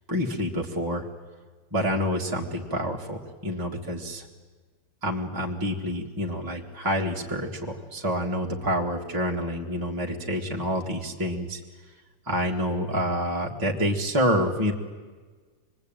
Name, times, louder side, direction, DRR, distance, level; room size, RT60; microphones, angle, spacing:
voice 1, 0.1-1.0 1.7-4.3 5.0-11.6 12.3-14.7, equal, 10° right, -1 dB, 1.8 m, -28 dB
27.0 x 21.0 x 9.0 m, 1.4 s
omnidirectional pair, 2.3 m